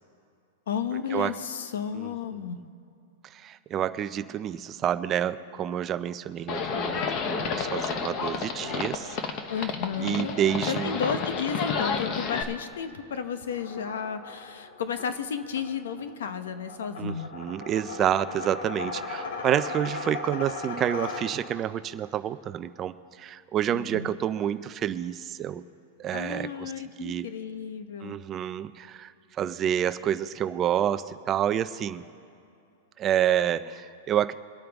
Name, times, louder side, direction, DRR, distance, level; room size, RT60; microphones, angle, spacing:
voice 1, 0.7-2.6 9.5-17.3 23.7-24.2 26.1-28.2, left 7 dB, 85° left, 10 dB, 1.0 m, -33 dB
voice 2, 3.3-9.2 10.0-11.0 17.0-25.6 26.0-26.7 27.0-27.3 28.0-29.1 29.4-32.1 33.0-34.3, right 10 dB, 20° right, 12 dB, 0.3 m, -28 dB
Livestock farm animals working animals, 6.5-12.4, left 5 dB, 30° left, 0.8 m, -30 dB
sound 1, 13.4-21.7, left 4 dB, 65° left, 1.4 m, -38 dB
23.0 x 8.8 x 3.5 m, 2.5 s
supercardioid pair, 175°, 0 cm